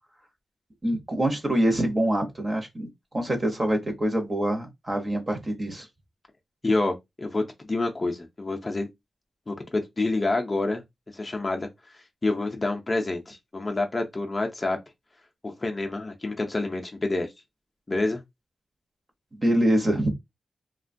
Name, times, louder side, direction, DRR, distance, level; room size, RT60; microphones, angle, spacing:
voice 1, 0.8-2.9 3.1-5.9 19.3-20.1, right 1 dB, 25° right, 0.7 m, -25 dB
voice 2, 6.6-8.9 9.5-10.8 11.1-11.7 11.9-14.8 15.4-17.3 17.9-18.2, left 2 dB, 25° left, 0.4 m, -28 dB
3.1 x 2.1 x 2.5 m
wide cardioid pair, 140°, 0 cm